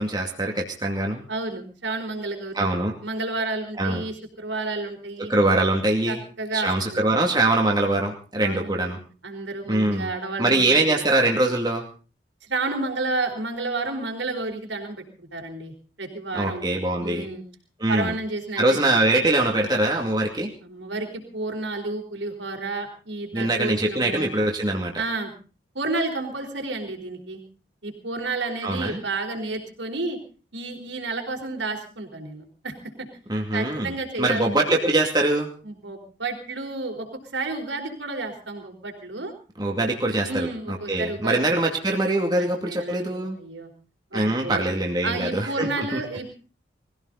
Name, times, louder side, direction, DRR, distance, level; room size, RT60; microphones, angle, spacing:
voice 1, 0.0-1.2 2.5-2.9 3.8-4.0 5.2-6.2 6.5-9.0 9.7-10.1 10.4-11.8 16.3-17.3 17.8-18.1 18.6-20.5 23.3-24.9 28.6-29.0 33.3-33.9 34.2-35.5 39.6-43.4 44.1-46.0, right 2 dB, 20° right, 0 dB, 2.4 m, -23 dB
voice 2, 1.3-2.7 3.0-5.3 6.1-7.1 8.4-8.9 9.2-11.0 12.4-15.7 16.0-17.4 17.9-19.0 20.6-24.3 25.0-25.3 25.7-27.4 27.8-30.2 30.5-33.1 33.5-34.6 35.6-39.3 40.2-41.4 42.2-43.7 44.1-44.7 45.0-46.3, right 3 dB, 80° right, 3 dB, 4.5 m, -31 dB
22.0 x 16.0 x 4.1 m, 0.38 s
head